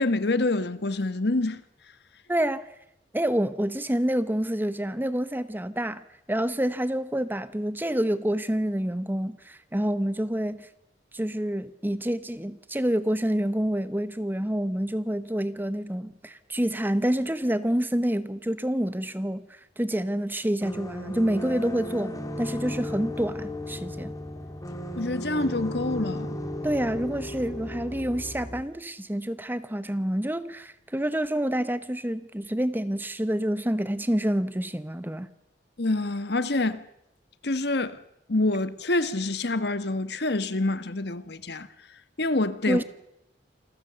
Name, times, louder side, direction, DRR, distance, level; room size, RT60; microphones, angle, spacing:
voice 1, 0.0-1.6 24.9-26.4 35.8-36.8 37.4-38.0 38.3-41.7 42.2-42.8, left 2 dB, 65° left, 1.4 m, -26 dB
voice 2, 2.3-2.7 3.1-10.7 11.1-24.1 26.6-35.3 42.7-42.8, right 1 dB, 10° right, 1.0 m, -28 dB
sound 1, 20.6-28.6, left 1 dB, 20° left, 2.7 m, -35 dB
28.0 x 22.0 x 7.0 m
head